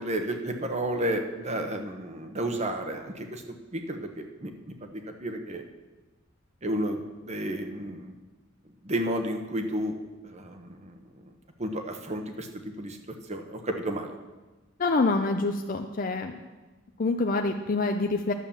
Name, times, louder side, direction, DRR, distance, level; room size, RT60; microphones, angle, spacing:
voice 1, 0.0-3.4 3.7-5.6 6.6-8.1 8.8-9.9 10.2-11.0 11.6-13.0 13.3-14.1, right 1 dB, 35° right, 5 dB, 1.0 m, -32 dB
voice 2, 14.8-16.3 17.0-18.3, left 3 dB, 40° left, 4 dB, 0.5 m, -26 dB
11.0 x 7.3 x 7.1 m, 1.2 s
head